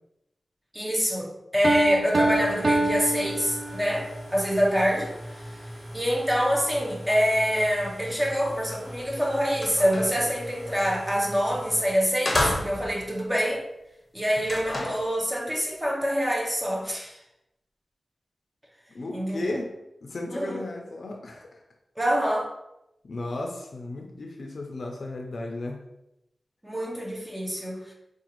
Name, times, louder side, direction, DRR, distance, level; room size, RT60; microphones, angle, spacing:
voice 1, 0.7-5.6 5.9-13.6 14.1-17.2 19.1-19.6 20.3-20.6 22.0-22.5 26.6-27.9, equal, 10° right, -1 dB, 0.7 m, -26 dB
Piano, 1.6-4.1, right 2 dB, 45° right, 0.3 m, -25 dB
sound 1, 2.2-11.9, equal, 90° right, 1.1 m, -41 dB
sound 2, 9.0-9.1 9.5-10.2 11.5-11.7 12.2-13.0 14.4-15.1, left 1 dB, 30° left, 0.7 m, -29 dB
voice 2, 18.9-19.7 20.0-21.6 23.0-25.8, left 2 dB, 65° left, 2 dB, 0.5 m, -34 dB
4.8 x 2.4 x 3.0 m, 0.88 s
wide cardioid pair, 90°, 0 cm